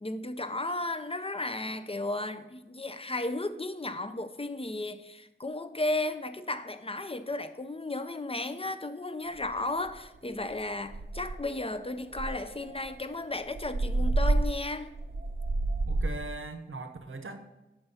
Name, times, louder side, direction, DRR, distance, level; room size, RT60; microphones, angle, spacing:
voice 1, 0.0-14.9, left 2 dB, 30° left, 0.5 m, -34 dB
sound 1, 9.4-9.5 9.9-10.2 10.5-10.6 10.9-11.6 12.1-16.3, right 2 dB, 50° right, 0.5 m, -30 dB
voice 2, 15.9-17.4, right 2 dB, 85° right, 0.8 m, -40 dB
5.8 x 5.5 x 6.8 m
wide cardioid pair, 50°, 20 cm